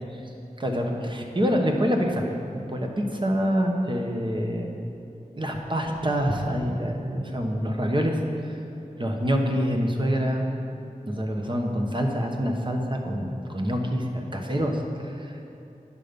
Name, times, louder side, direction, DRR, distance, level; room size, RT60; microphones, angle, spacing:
voice 1, 0.6-2.2 2.5-4.8 5.3-8.6 9.0-10.5 11.1-15.2, equal, 35° right, 1 dB, 1.1 m, -26 dB
9.7 x 6.8 x 5.2 m, 2.7 s
wide cardioid pair, 70°, 14 cm